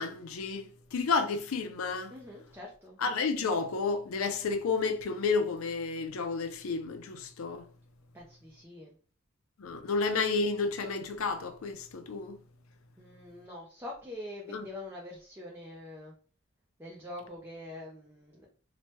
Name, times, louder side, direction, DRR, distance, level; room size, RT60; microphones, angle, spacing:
voice 1, 0.0-2.1 3.0-7.6 9.6-12.4 14.5-14.6, left 4 dB, 75° left, 0.5 m, -31 dB
voice 2, 2.1-3.0 8.1-8.9 13.0-16.1 16.8-18.5, left 1 dB, 10° right, 0.5 m, -44 dB
3.0 x 2.1 x 3.0 m
head